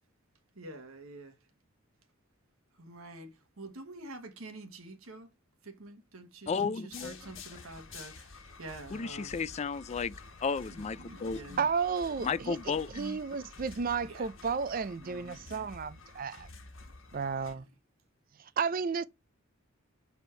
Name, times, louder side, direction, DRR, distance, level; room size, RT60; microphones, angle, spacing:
voice 1, 0.5-1.4 2.8-5.3 5.6-9.4 10.7-11.7 14.0-14.3 15.0-15.7 17.1-17.6, right 2 dB, 90° right, 1.3 m, -48 dB
voice 2, 6.5-7.2 8.9-10.1 10.4-11.6 12.2-13.2, left 5 dB, 30° left, 0.3 m, -33 dB
sound 1, 6.9-17.5, left 3 dB, 65° left, 1.7 m, -50 dB
voice 3, 11.6-16.5 17.1-17.7 18.4-19.0, right 5 dB, 40° right, 0.4 m, -33 dB
7.1 x 4.3 x 4.4 m
head